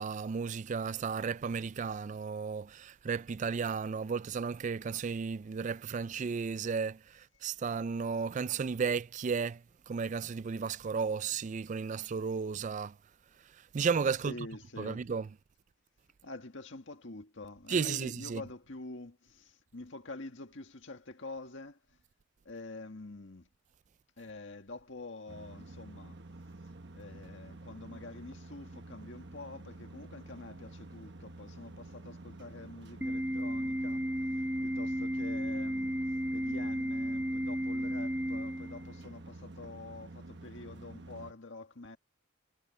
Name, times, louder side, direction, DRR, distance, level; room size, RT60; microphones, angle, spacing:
voice 1, 0.0-9.6 9.9-12.9 13.7-14.3 14.8-15.2 17.7-18.4, right 5 dB, 35° right, 0.3 m, -34 dB
voice 2, 14.2-15.1 16.2-22.0 22.4-23.5 24.2-26.2 26.9-36.0 36.3-42.0, left 2 dB, 65° left, 1.8 m, -47 dB
sound 1, 25.3-41.3, right 2 dB, 55° right, 1.2 m, -49 dB
Organ, 33.0-39.0, equal, 10° right, 1.4 m, -33 dB
head